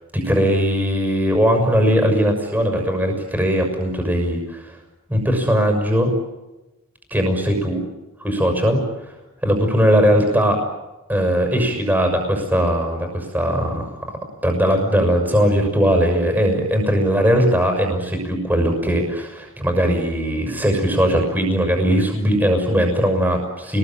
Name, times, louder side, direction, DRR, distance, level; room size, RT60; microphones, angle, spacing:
voice 1, 0.1-4.8 5.1-6.1 7.1-7.8 8.2-9.1 9.4-10.6 11.1-14.2 14.4-23.8, equal, 10° right, 4 dB, 6.4 m, -19 dB
28.5 x 21.5 x 9.0 m, 1.0 s
head